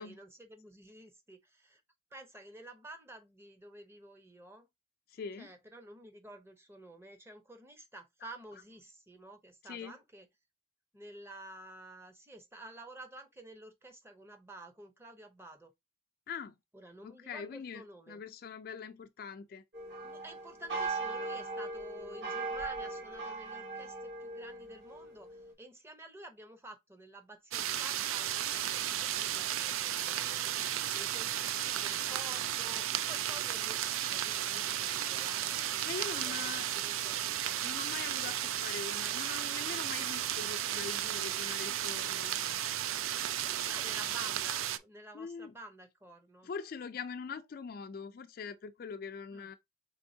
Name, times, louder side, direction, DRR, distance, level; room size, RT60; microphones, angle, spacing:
voice 1, 0.0-1.8 2.1-4.7 5.4-10.3 10.9-15.7 16.7-18.2 20.0-25.3 25.6-30.6 30.9-35.8 36.1-37.2 43.4-46.5 49.3-49.5, right 1 dB, 10° right, 0.7 m, -51 dB
voice 2, 5.1-5.5 9.6-10.0 16.3-16.5 17.0-19.6 35.8-36.7 37.6-42.4 45.1-45.5 46.4-49.6, left 5 dB, 45° left, 0.3 m, -43 dB
sound 1, 19.7-25.5, right 3 dB, 60° right, 2.1 m, -39 dB
sound 2, 27.5-44.8, right 11 dB, 85° right, 0.4 m, -34 dB
4.4 x 3.4 x 2.7 m
head